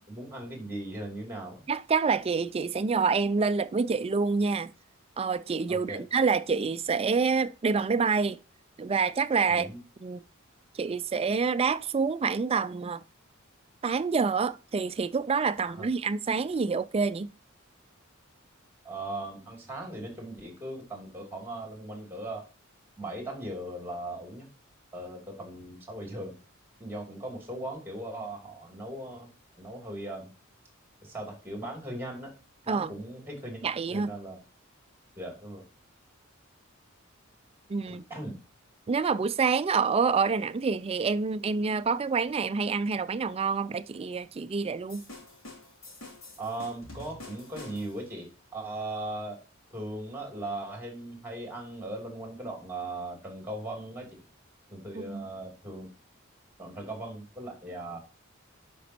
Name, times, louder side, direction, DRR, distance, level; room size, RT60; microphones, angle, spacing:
voice 1, 0.1-1.6 5.7-6.0 9.5-9.8 15.6-15.9 18.8-22.5 23.0-24.5 24.9-26.4 26.8-29.3 29.5-30.3 31.0-32.3 32.6-33.6 33.9-34.4 35.1-35.6 37.9-38.4 46.4-49.4 49.7-54.2 54.7-55.9 56.6-58.0, right 1 dB, 10° right, 2.8 m, -38 dB
voice 2, 1.7-4.7 5.2-8.4 8.8-9.7 10.0-10.2 10.7-13.0 13.8-17.3 32.7-32.9 33.6-34.1 37.7-38.0 38.9-45.0 54.9-55.3, right 5 dB, 30° right, 0.4 m, -27 dB
sound 1, 44.9-48.1, left 2 dB, 70° left, 3.1 m, -47 dB
11.0 x 5.2 x 2.8 m
head